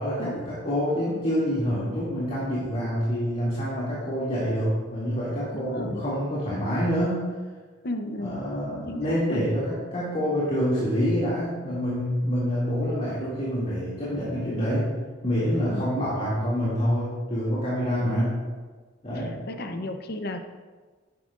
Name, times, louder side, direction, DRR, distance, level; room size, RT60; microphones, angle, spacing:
voice 1, 0.0-7.2 8.2-14.9 15.2-18.4 19.0-19.4, equal, 35° left, -9 dB, 2.5 m, -27 dB
voice 2, 5.5-6.0 7.8-8.4 8.9-9.4 15.7-15.9 18.0-18.2 19.2-20.4, left 1 dB, 55° left, 6 dB, 0.7 m, -34 dB
11.5 x 9.7 x 2.5 m, 1.4 s
head